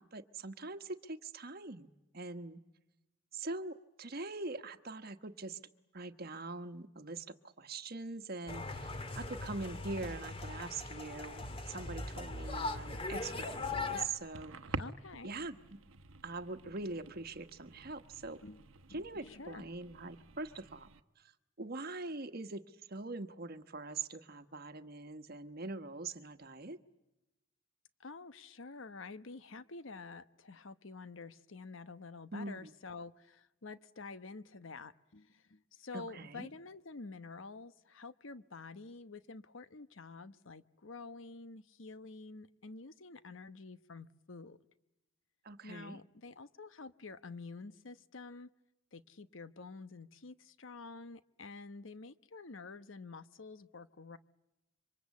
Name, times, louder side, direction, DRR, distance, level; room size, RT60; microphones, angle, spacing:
voice 1, 0.0-2.6 3.3-5.6 5.9-14.6 15.2-15.6 16.2-18.4 18.9-20.9 21.2-21.3 21.6-26.8 32.3-32.7 35.9-36.5 45.4-46.0, right 3 dB, 50° right, 1.3 m, -43 dB
sound 1, 8.5-14.1, left 3 dB, 30° left, 1.8 m, -40 dB
sound 2, 12.8-21.0, right 3 dB, 80° right, 1.0 m, -49 dB
voice 2, 14.8-15.3 18.4-18.6 18.9-19.7 28.0-44.6 45.6-48.5 48.9-54.2, left 3 dB, 70° left, 1.0 m, -49 dB
27.0 x 25.0 x 8.4 m
head